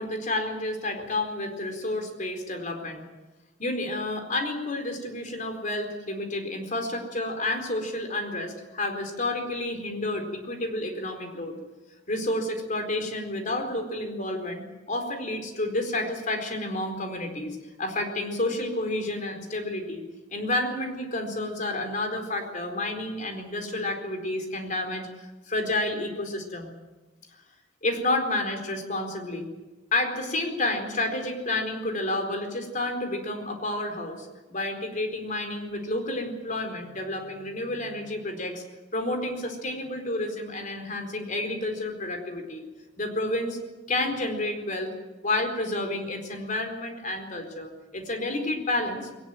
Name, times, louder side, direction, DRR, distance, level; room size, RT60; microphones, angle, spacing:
voice 1, 0.0-3.0 3.6-11.5 12.1-20.0 20.3-25.1 25.5-26.7 27.8-29.5 29.9-38.6 38.9-42.6 43.0-43.6 43.9-44.9 45.2-49.2, left 1 dB, 45° left, 5 dB, 4.4 m, -30 dB
21.5 x 19.0 x 9.2 m, 1.1 s
head